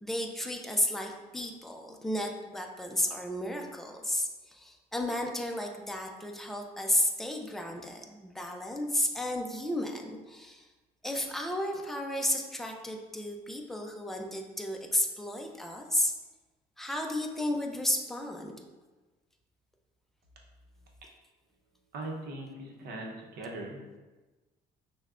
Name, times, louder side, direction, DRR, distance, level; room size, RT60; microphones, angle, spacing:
voice 1, 0.0-10.6 11.0-16.1 16.8-18.5, left 1 dB, ahead, 2 dB, 0.4 m, -33 dB
voice 2, 21.9-24.0, right 2 dB, 70° right, 0 dB, 0.8 m, -40 dB
6.3 x 2.2 x 2.4 m, 1.2 s
cardioid pair, 110°, 17 cm